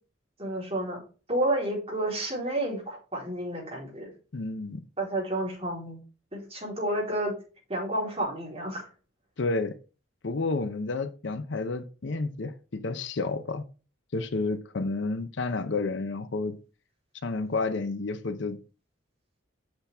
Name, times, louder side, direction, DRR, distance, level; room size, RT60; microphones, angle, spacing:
voice 1, 0.4-1.0 1.3-4.1 5.0-6.0 6.3-7.3 7.7-8.9, right 1 dB, 30° right, 3.7 m, -30 dB
voice 2, 4.3-4.8 9.4-9.8 10.2-13.6 14.1-16.5 17.2-18.6, left 3 dB, 60° left, 0.6 m, -30 dB
7.9 x 5.8 x 3.4 m
head